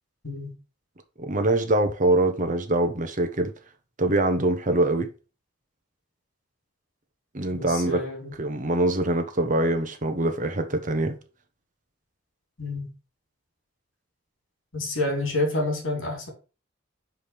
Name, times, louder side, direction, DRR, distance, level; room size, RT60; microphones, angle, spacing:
voice 1, 0.2-0.5 7.5-8.3 12.6-12.9 14.7-16.3, left 2 dB, 85° left, 3.0 m, -28 dB
voice 2, 1.2-3.5 4.0-5.1 7.3-8.0 8.4-11.2, right 2 dB, 40° right, 1.1 m, -24 dB
5.1 x 5.1 x 5.7 m
head